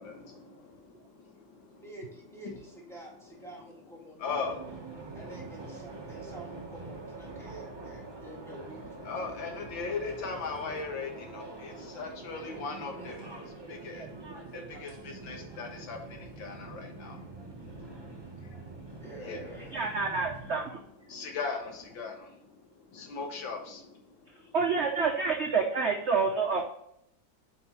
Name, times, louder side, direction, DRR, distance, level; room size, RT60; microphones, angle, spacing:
voice 1, 0.0-1.9 2.4-2.6 3.3-3.4 4.2-5.2 7.3-8.4 9.0-14.1 14.5-19.9 20.7-24.6, left 4 dB, 80° left, 3 dB, 2.0 m, -40 dB
voice 2, 1.8-4.2 5.1-9.1 10.0-10.1 13.0-13.1 19.0-19.9, right 1 dB, ahead, -3 dB, 1.8 m, -48 dB
sound 1, 4.3-20.6, right 3 dB, 25° right, 0.6 m, -45 dB
voice 3, 19.7-20.8 24.5-26.6, right 5 dB, 60° right, 3 dB, 0.7 m, -28 dB
7.9 x 5.3 x 3.0 m, 0.74 s
omnidirectional pair, 2.1 m